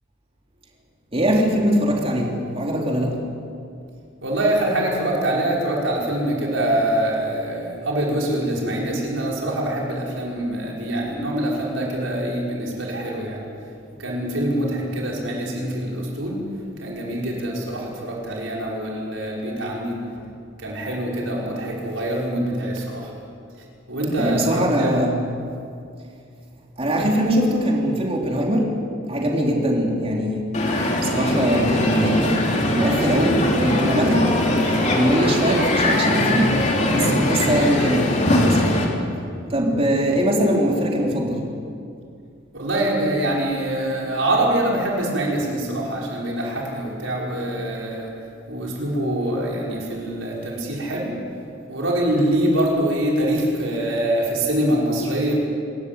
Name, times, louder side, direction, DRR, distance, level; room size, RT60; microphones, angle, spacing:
voice 1, 1.1-3.2 24.1-25.2 26.8-28.7 29.1-30.5 31.0-32.4 32.7-34.3 34.8-36.5 36.9-38.6 39.5-41.4, equal, 30° right, -1 dB, 3.6 m, -21 dB
voice 2, 4.2-13.5 14.0-20.2 20.6-23.2 23.9-25.0 42.5-55.3, right 1 dB, 80° right, -3 dB, 5.4 m, -24 dB
Crowd, 30.5-38.8, left 1 dB, 35° left, 3.4 m, -21 dB
26.0 x 14.5 x 9.6 m, 2.4 s
head